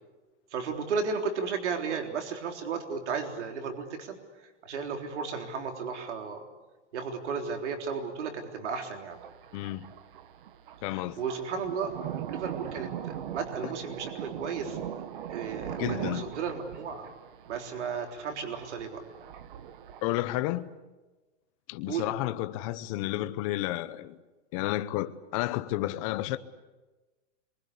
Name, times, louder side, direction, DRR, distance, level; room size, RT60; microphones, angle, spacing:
voice 1, 0.5-4.2 4.6-6.4 6.9-9.2 10.9-11.9 12.3-14.8 15.3-17.1 17.5-19.0 21.9-22.1, right 5 dB, 70° right, 3.8 m, -34 dB
Thunder, 9.1-20.4, right 10 dB, 45° right, 1.3 m, -40 dB
voice 2, 9.5-9.9 10.8-11.2 15.8-16.3 20.0-20.7 21.7-24.2 24.5-26.4, left 16 dB, 30° left, 0.8 m, -31 dB
26.0 x 23.5 x 8.3 m
supercardioid pair, 165°, 36 cm